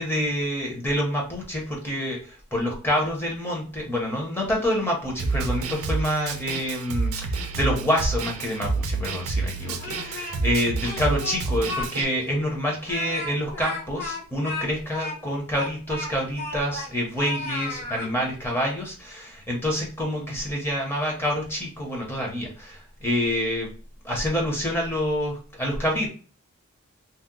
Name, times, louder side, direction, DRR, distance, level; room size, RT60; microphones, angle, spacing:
voice 1, 0.0-23.7 24.0-26.1, equal, 10° left, -1 dB, 0.6 m, -27 dB
Snare drum, 5.2-12.0, right 3 dB, 80° right, 0.5 m, -29 dB
Speech, 9.6-10.5 10.8-11.9 12.2-12.3 12.8-16.9 17.2-18.1, left 3 dB, 45° left, 1.1 m, -34 dB
2.8 x 2.0 x 3.6 m, 0.40 s
head